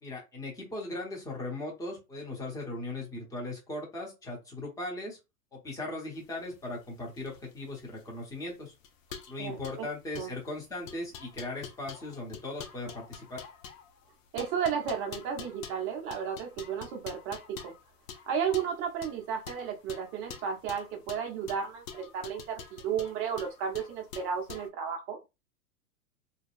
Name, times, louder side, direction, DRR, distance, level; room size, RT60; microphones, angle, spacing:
voice 1, 0.0-5.2 5.5-8.7 9.3-13.4, left 2 dB, 5° left, 0.9 m, -38 dB
sound 1, 6.2-24.7, left 7 dB, 55° left, 0.7 m, -47 dB
voice 2, 9.4-9.9 10.2-10.4 14.3-17.7 18.3-25.2, right 7 dB, 25° right, 0.6 m, -33 dB
2.7 x 2.2 x 2.4 m
hypercardioid pair, 110°, 47 cm